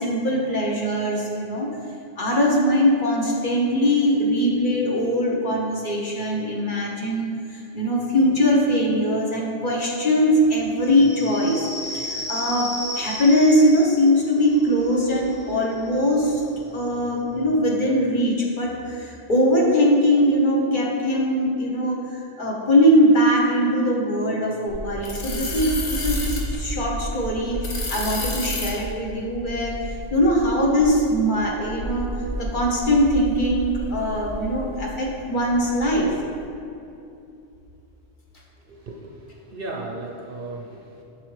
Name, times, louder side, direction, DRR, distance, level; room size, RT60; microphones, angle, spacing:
voice 1, 0.0-1.7 2.2-12.7 12.9-16.4 16.7-32.1 32.4-36.1, equal, 45° left, -2 dB, 1.0 m, -21 dB
sound 1, 10.9-18.1, left 1 dB, 15° left, 0.5 m, -35 dB
sound 2, 24.7-34.8 35.2-36.2, equal, 65° left, 1.3 m, -31 dB
voice 2, 38.7-41.0, right 2 dB, 55° right, 0 dB, 0.7 m, -36 dB
7.3 x 6.1 x 3.2 m, 2.7 s
omnidirectional pair, 1.3 m